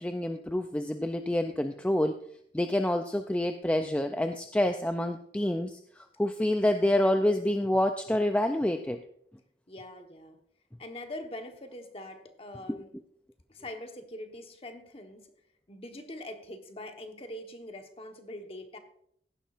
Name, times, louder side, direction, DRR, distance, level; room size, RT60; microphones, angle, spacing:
voice 1, 0.0-2.2 2.5-9.0 12.7-12.8, left 1 dB, 5° left, 7 dB, 0.3 m, -27 dB
voice 2, 9.7-10.4 10.8-12.9 13.5-15.3 15.7-18.8, left 1 dB, 30° left, 5 dB, 1.2 m, -43 dB
15.5 x 11.5 x 2.5 m, 0.69 s
head